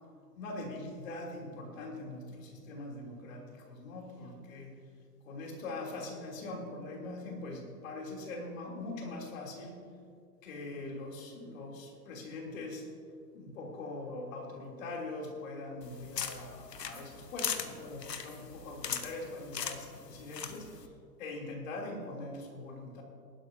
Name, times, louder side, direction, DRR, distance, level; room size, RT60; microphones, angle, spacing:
voice 1, 0.3-4.8 5.2-9.8 10.4-12.9 13.3-20.9 21.2-23.0, left 2 dB, 50° left, 0 dB, 3.2 m, -42 dB
sound 1, 15.8-20.9, left 7 dB, 75° left, 1.2 m, -40 dB
20.0 x 12.0 x 2.7 m, 2.3 s
figure-of-eight pair, 125°, 49 cm